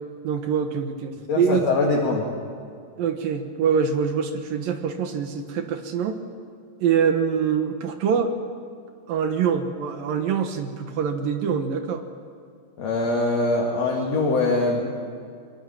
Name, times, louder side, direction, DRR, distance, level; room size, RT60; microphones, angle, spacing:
voice 1, 0.2-1.6 3.0-6.2 6.8-8.3 9.1-12.0, right 7 dB, 70° right, 6 dB, 2.7 m, -24 dB
voice 2, 1.3-2.3 12.8-14.9, left 2 dB, 45° left, -2 dB, 2.9 m, -22 dB
23.0 x 22.5 x 7.2 m, 2.3 s
omnidirectional pair, 4.6 m